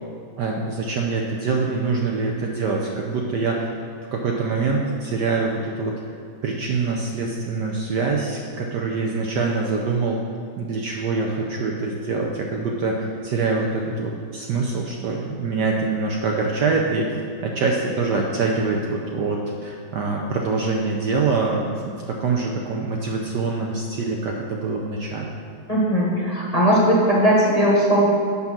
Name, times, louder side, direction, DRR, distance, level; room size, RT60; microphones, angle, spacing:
voice 1, 0.4-3.7 4.1-6.0 6.4-10.2 10.6-17.2 17.4-25.3, right 4 dB, 70° right, 0 dB, 1.1 m, -24 dB
voice 2, 25.7-28.1, equal, 25° left, -4 dB, 1.0 m, -18 dB
7.6 x 5.7 x 6.0 m, 2.2 s
omnidirectional pair, 2.3 m